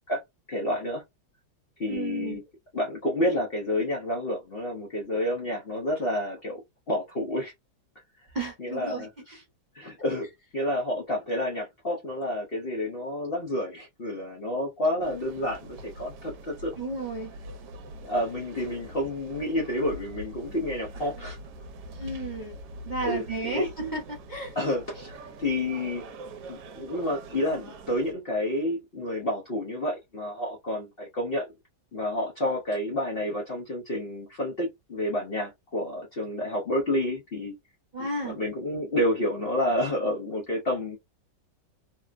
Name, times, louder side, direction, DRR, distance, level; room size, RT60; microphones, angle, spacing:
voice 1, 0.5-1.0 1.8-2.4 2.7-6.6 6.9-7.5 8.6-9.4 9.7-10.3 10.5-16.7 18.0-21.4 23.0-23.7 24.5-26.0 26.5-31.5 31.9-37.5 38.0-41.0, left 1 dB, 45° left, 0.7 m, -29 dB
voice 2, 1.9-2.4 8.3-9.1 16.8-17.3 22.0-22.6 22.8-24.5 37.9-38.4, right 2 dB, 40° right, 0.7 m, -32 dB
sound 1, 15.0-28.1, right 1 dB, 75° right, 1.2 m, -43 dB
3.6 x 2.1 x 2.4 m
omnidirectional pair, 1.9 m